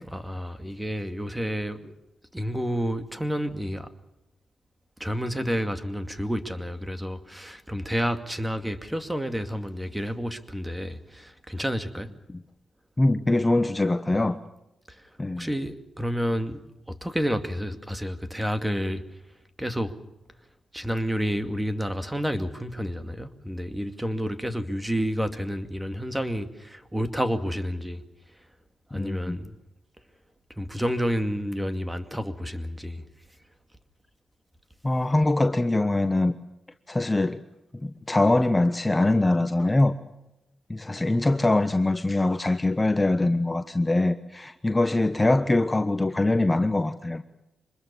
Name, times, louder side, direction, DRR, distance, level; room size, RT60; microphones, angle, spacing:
voice 1, 0.0-1.9 2.3-3.9 5.0-12.1 14.9-15.0 15.4-16.6 16.9-19.0 19.6-19.9 20.7-28.0 28.9-29.5 30.6-33.0, equal, 10° right, 9 dB, 2.4 m, -30 dB
voice 2, 13.0-14.4 15.2-15.5 28.9-29.4 34.8-36.3 36.9-37.4 37.7-39.9 40.7-47.2, left 2 dB, 20° left, 9 dB, 1.2 m, -23 dB
25.5 x 21.0 x 7.0 m, 0.90 s
cardioid pair, 75°, 0 cm